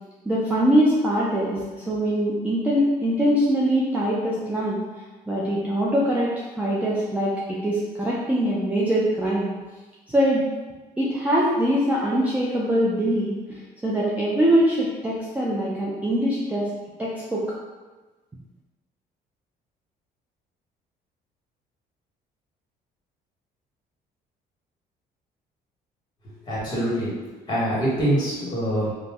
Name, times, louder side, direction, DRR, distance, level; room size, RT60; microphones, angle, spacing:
voice 1, 0.3-4.8 5.3-9.5 10.1-10.4 11.0-16.7 17.0-17.5, equal, 10° right, -6 dB, 0.4 m, -23 dB
voice 2, 26.5-27.1 27.5-28.9, right 1 dB, 25° left, -7 dB, 1.3 m, -24 dB
2.5 x 2.0 x 3.4 m, 1.2 s
cardioid pair, 110°, 17 cm